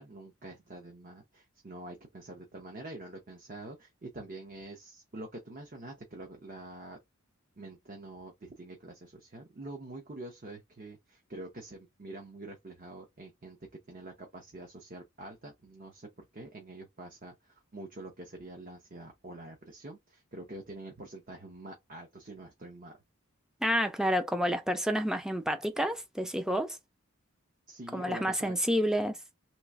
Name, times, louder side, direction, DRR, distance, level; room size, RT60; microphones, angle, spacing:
voice 1, 0.0-7.0 7.6-13.6 13.9-23.0 27.7-28.5, right 2 dB, 40° right, 0.8 m, -46 dB
voice 2, 23.6-26.8 27.9-29.2, equal, 5° right, 0.4 m, -29 dB
3.1 x 3.0 x 2.4 m
head